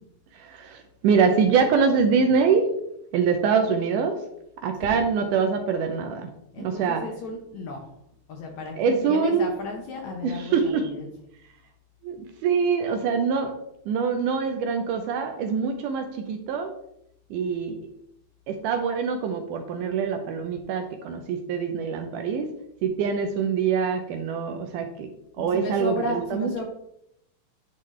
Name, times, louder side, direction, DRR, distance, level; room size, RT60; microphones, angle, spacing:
voice 1, 0.3-2.8 3.1-4.2 4.6-6.3 6.6-7.0 8.8-9.5 10.2-10.9 12.0-12.2 12.4-13.5 13.9-16.7 17.3-17.8 18.5-22.5 22.8-25.1 25.4-26.6, right 6 dB, 80° right, 5 dB, 2.0 m, -24 dB
voice 2, 6.5-7.9 8.3-11.1 25.4-26.6, left 2 dB, 70° left, 1 dB, 1.8 m, -34 dB
10.5 x 3.8 x 3.1 m, 0.79 s
omnidirectional pair, 4.1 m